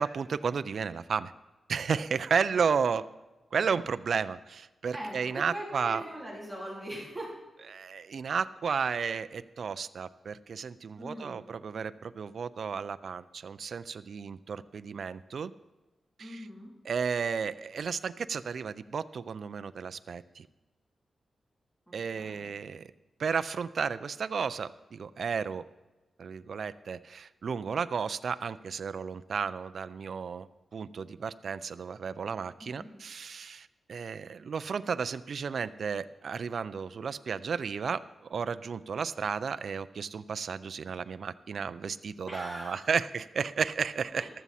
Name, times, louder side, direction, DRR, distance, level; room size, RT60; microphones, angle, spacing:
voice 1, 0.0-1.3 1.7-3.1 3.5-6.0 7.7-15.5 16.2-16.5 16.8-20.5 21.9-22.9 23.2-25.7 26.2-30.5 30.7-44.3, right 6 dB, 60° right, 13 dB, 0.4 m, -33 dB
voice 2, 4.9-7.3 11.0-11.4 16.2-16.7 21.9-22.5 32.6-32.9 42.2-42.9 44.1-44.3, right 1 dB, ahead, -5 dB, 3.2 m, -41 dB
14.5 x 12.5 x 4.2 m, 1.1 s
wide cardioid pair, 150°, 0 cm